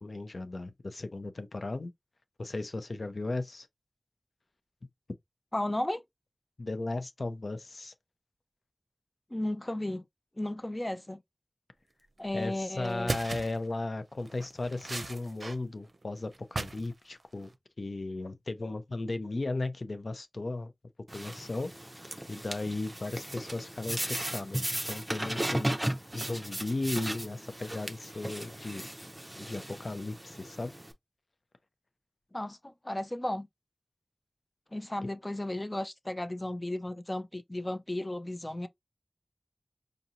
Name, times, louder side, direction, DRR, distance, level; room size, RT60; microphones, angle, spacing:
voice 1, 0.0-1.9 2.4-3.7 6.6-7.9 12.3-17.5 17.8-20.7 21.1-21.7 22.3-25.7 26.1-28.9 29.4-30.7, left 2 dB, 75° left, 0.5 m, -36 dB
voice 2, 5.5-6.0 9.3-10.0 10.4-11.2 12.2-13.1 32.3-33.5 34.7-38.7, left 1 dB, 30° left, 0.5 m, -34 dB
sound 1, 12.3-12.4 12.8-13.6 14.2-15.6 15.8-16.9 17.2-17.5, right 2 dB, 65° right, 0.5 m, -37 dB
sound 2, 21.1-30.9, right 1 dB, 15° right, 0.7 m, -36 dB
5.1 x 2.8 x 2.5 m
wide cardioid pair, 60°, 0 cm